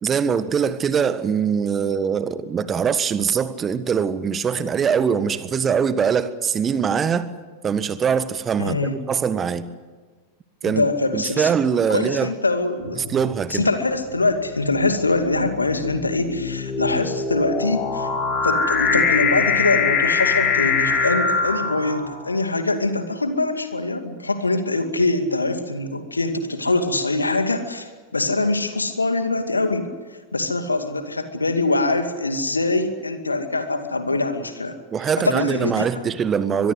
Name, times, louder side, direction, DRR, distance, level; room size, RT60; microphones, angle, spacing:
voice 1, 0.0-7.3 7.6-8.8 9.1-9.7 10.6-10.8 11.1-12.3 13.0-13.7 34.9-36.7, right 7 dB, 25° right, 14 dB, 1.5 m, -22 dB
voice 2, 8.6-9.0 10.6-11.5 11.9-13.0 13.5-18.1 18.4-29.9 30.3-34.8 35.2-36.0, left 2 dB, 80° left, 8 dB, 2.4 m, -23 dB
sound 1, 12.9-13.3 14.1-22.4, left 5 dB, 30° left, 6.0 m, -23 dB
24.0 x 21.5 x 8.0 m, 1.4 s
figure-of-eight pair, 90°, 0 cm